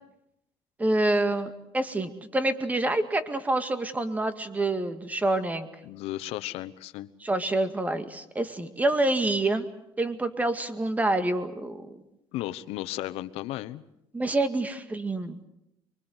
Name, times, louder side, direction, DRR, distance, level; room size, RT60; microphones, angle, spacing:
voice 1, 0.8-5.7 7.2-9.7 10.0-12.0 14.1-15.4, right 2 dB, 15° right, 10 dB, 2.1 m, -27 dB
voice 2, 5.8-7.1 12.3-13.8, left 15 dB, 85° left, 13 dB, 1.0 m, -34 dB
25.0 x 23.5 x 8.0 m, 0.82 s
cardioid pair, 120°, 10 cm